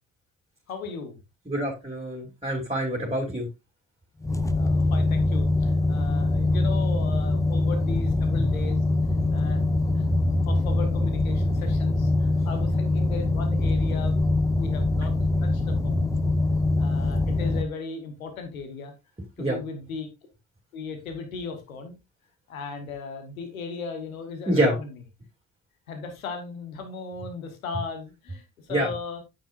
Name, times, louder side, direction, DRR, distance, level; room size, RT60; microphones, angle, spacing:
voice 1, 0.7-1.2 4.5-8.8 9.3-9.6 9.9-10.1 10.4-15.1 15.4-16.1 16.8-18.9 19.4-20.1 20.7-22.0 22.5-25.0 25.9-29.2, left 4 dB, 90° left, 6 dB, 1.2 m, -37 dB
voice 2, 1.5-3.5 19.4-19.6 24.5-24.8 28.7-28.9, right 1 dB, 15° right, 0 dB, 2.7 m, -26 dB
sound 1, 4.2-17.6, left 2 dB, 10° left, 0.8 m, -23 dB
9.1 x 6.9 x 2.5 m, 0.25 s
hypercardioid pair, 40°, 40 cm